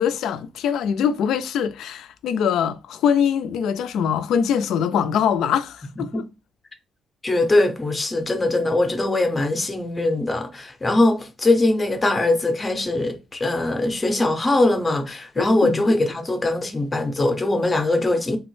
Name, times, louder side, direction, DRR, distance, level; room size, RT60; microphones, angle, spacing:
voice 1, 0.0-6.2 15.4-15.8, left 8 dB, 80° left, 0.3 m, -23 dB
voice 2, 7.2-18.4, left 2 dB, 20° left, 0.5 m, -21 dB
3.4 x 2.0 x 3.0 m
cardioid pair, 90°, 0 cm